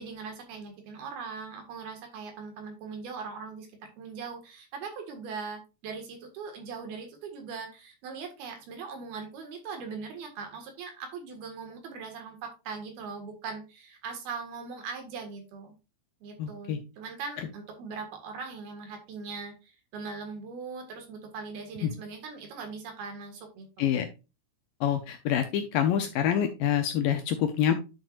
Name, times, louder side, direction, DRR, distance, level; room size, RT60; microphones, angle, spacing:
voice 1, 0.0-15.8 16.2-23.9, right 5 dB, 70° right, 4 dB, 3.5 m, -40 dB
voice 2, 16.4-16.8 21.8-21.9 23.8-24.1 24.8-27.7, left 9 dB, 80° left, 6 dB, 2.1 m, -26 dB
10.5 x 6.1 x 2.4 m, 0.29 s
omnidirectional pair, 4.6 m